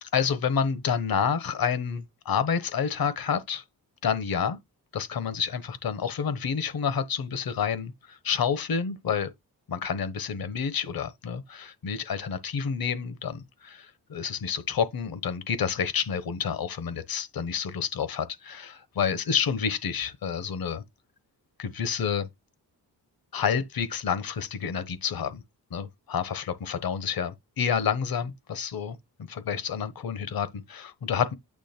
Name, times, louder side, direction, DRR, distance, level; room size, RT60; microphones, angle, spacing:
voice 1, 0.0-3.6 4.0-4.6 4.9-9.3 9.7-20.8 21.6-22.3 23.3-25.4 25.7-29.0 29.3-31.3, left 7 dB, 65° left, 1.1 m, -29 dB
8.7 x 3.0 x 4.3 m
wide cardioid pair, 115°, 38 cm